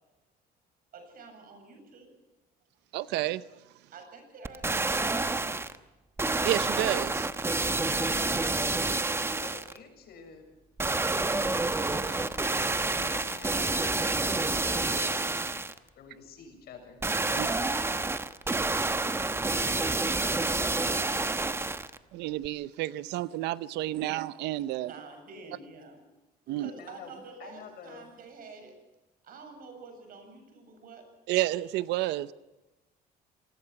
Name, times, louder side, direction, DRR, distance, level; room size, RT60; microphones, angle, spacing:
voice 1, 0.9-2.1 3.9-5.7 17.3-18.1 23.8-24.2 24.8-26.0 26.5-28.8 29.2-31.1, right 4 dB, 60° right, 6 dB, 7.5 m, -48 dB
voice 2, 2.9-3.4 6.4-7.3 17.4-17.5 22.1-24.9 26.5-26.7 31.3-32.3, right 16 dB, 85° right, 16 dB, 0.7 m, -30 dB
sound 1, 4.4-5.8 6.2-9.8 10.8-15.8 17.0-22.0 22.4-22.5, right 3 dB, 15° right, 1.1 m, -28 dB
voice 3, 9.4-10.5 11.0-12.4 12.8-15.3 16.0-17.0 17.3-17.6 26.7-27.1 27.4-28.1, left 5 dB, 70° left, 5 dB, 7.1 m, -48 dB
26.5 x 20.0 x 5.9 m, 1.1 s
cardioid pair, 110°, 17 cm